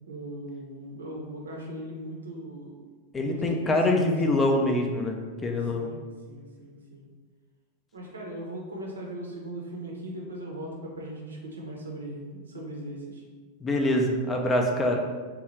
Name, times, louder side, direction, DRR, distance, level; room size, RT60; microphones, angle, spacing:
voice 1, 0.1-2.8 3.2-4.4 5.7-7.1 7.9-13.2, right 1 dB, 70° right, -1 dB, 0.6 m, -39 dB
voice 2, 3.1-5.9 13.6-15.0, left 1 dB, 20° left, 2 dB, 0.4 m, -25 dB
2.7 x 2.3 x 3.1 m, 1.5 s
figure-of-eight pair, 90°, 0 cm